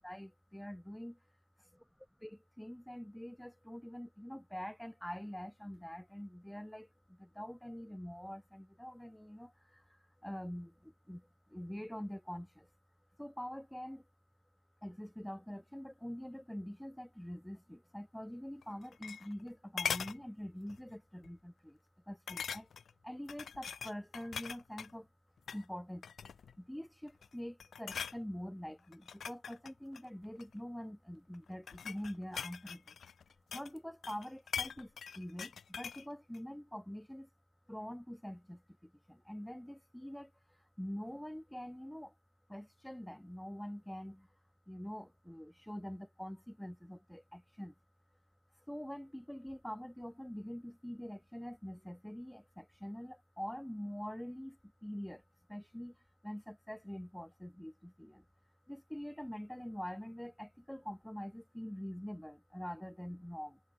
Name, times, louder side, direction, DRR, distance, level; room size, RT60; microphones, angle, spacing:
voice 1, 0.0-1.2 2.2-12.7 13.2-14.1 14.8-21.8 22.1-22.7 23.0-25.1 25.5-26.1 26.6-32.9 33.5-37.3 37.7-42.1 42.5-44.3 44.7-47.7 48.7-55.2 55.5-56.0 56.2-58.2 58.7-63.6, equal, 5° left, 0.8 m, -45 dB
sound 1, 18.6-19.5 19.8-20.2 20.7-20.9 21.2-21.3 22.3-22.9 23.3-24.9 25.4-25.6 26.0-26.6 27.1-27.3 27.6-28.2 28.9-30.5 31.3-33.8 34.0-36.1 36.3-36.4, left 7 dB, 50° left, 0.9 m, -41 dB
cardioid pair, 90°, 0 cm